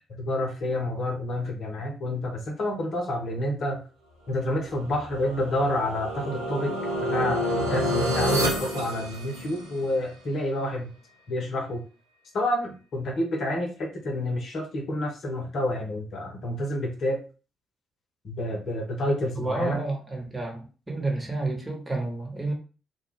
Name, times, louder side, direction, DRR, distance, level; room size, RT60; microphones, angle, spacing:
voice 1, 0.2-3.8 4.3-6.7 7.0-10.9 11.3-11.8 12.3-17.2 18.2-19.8, left 1 dB, 55° left, 0.8 m, -29 dB
sound 1, 4.6-9.8, equal, 85° right, 0.6 m, -28 dB
voice 2, 19.3-22.5, right 2 dB, 20° right, 1.2 m, -30 dB
2.3 x 2.2 x 3.5 m
hypercardioid pair, 45°, 0 cm